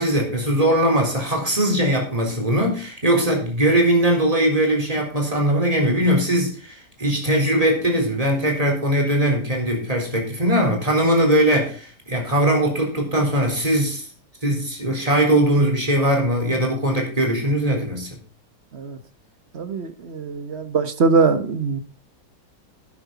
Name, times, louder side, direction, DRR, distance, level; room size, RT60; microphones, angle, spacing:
voice 1, 0.0-14.1 14.4-18.1, right 1 dB, 20° right, 4.1 m, -20 dB
voice 2, 19.5-21.8, right 4 dB, 40° right, 1.1 m, -22 dB
12.5 x 9.7 x 4.1 m
omnidirectional pair, 2.0 m